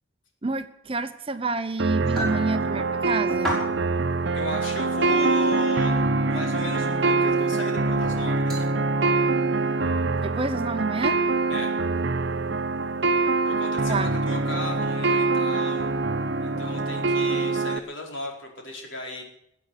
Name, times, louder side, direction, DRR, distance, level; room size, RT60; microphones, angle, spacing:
voice 1, 0.4-3.6 10.2-11.3 13.9-14.1, right 3 dB, 30° right, 10 dB, 0.9 m, -28 dB
sound 1, 1.8-17.8, right 3 dB, 60° right, 0.9 m, -24 dB
sound 2, 2.0-2.4 3.3-3.7 4.3-4.4 5.3-5.4 7.4-7.5 8.5-8.6, right 1 dB, 5° left, 5.5 m, -30 dB
voice 2, 4.3-8.7 11.5-11.7 13.5-15.9 16.4-19.2, left 1 dB, 75° left, 0 dB, 4.7 m, -35 dB
20.5 x 8.3 x 8.1 m, 0.77 s
head